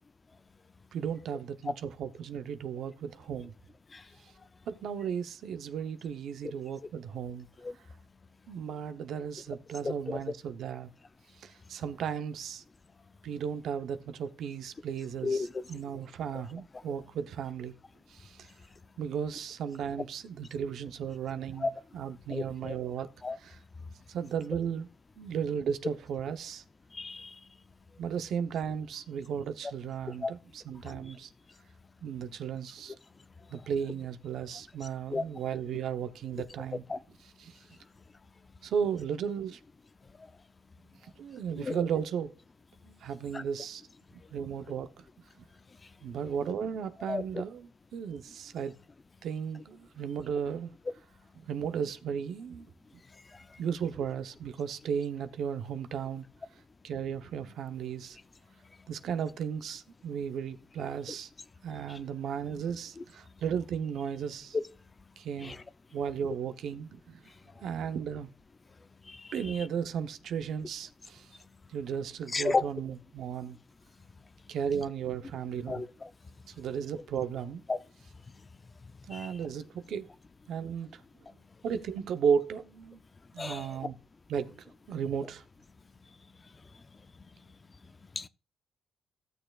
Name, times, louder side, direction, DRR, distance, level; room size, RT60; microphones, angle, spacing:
voice 1, 0.9-3.5 4.7-7.5 8.5-10.9 11.4-12.6 13.2-17.8 18.1-18.5 19.0-23.1 23.4-23.6 24.1-24.9 25.2-26.6 28.0-31.3 32.0-32.9 33.5-36.8 37.4-37.6 38.6-39.6 41.2-42.3 42.8-43.8 44.3-45.0 45.4-45.5 46.0-48.8 49.2-50.8 51.4-52.7 53.6-56.2 56.8-58.2 58.9-61.3 61.6-64.6 65.2-65.6 65.9-67.2 67.6-68.3 69.3-71.3 71.7-73.6 74.5-75.8 76.5-77.6 79.1-80.1 80.5-81.0 81.6-83.0 83.3-84.0 84.3-85.4, right 7 dB, 70° right, 0.8 m, -35 dB
voice 2, 9.8-10.2 15.2-15.6 21.6-21.7 22.3-22.8 23.2-23.4 26.9-27.4 30.2-30.3 30.8-30.9 35.1-35.2 36.9-37.0 41.6-41.8 43.3-43.4 47.1-47.2 53.3-53.4 61.9-62.0 65.4-65.6 69.1-69.6 72.3-72.7 75.7-76.1 77.7-77.8 79.1-79.4 83.4-83.7 88.2-88.3, left 3 dB, 30° left, 0.5 m, -33 dB
15.5 x 6.7 x 2.4 m
cardioid pair, 90°, 0 cm